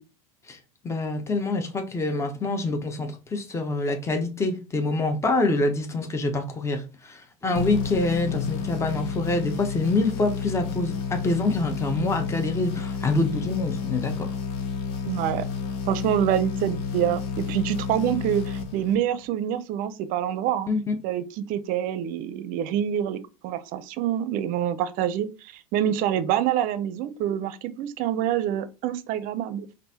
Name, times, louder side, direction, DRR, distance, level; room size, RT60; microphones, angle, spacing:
voice 1, 0.8-6.8 7.1-14.3 20.7-21.0, left 2 dB, 15° left, 0.8 m, -26 dB
sound 1, 7.5-19.3, left 6 dB, 65° left, 0.9 m, -31 dB
voice 2, 15.1-15.5 15.9-20.7 21.0-29.7, right 10 dB, 50° right, 0.6 m, -26 dB
5.4 x 2.6 x 2.8 m
hypercardioid pair, 100°, 18 cm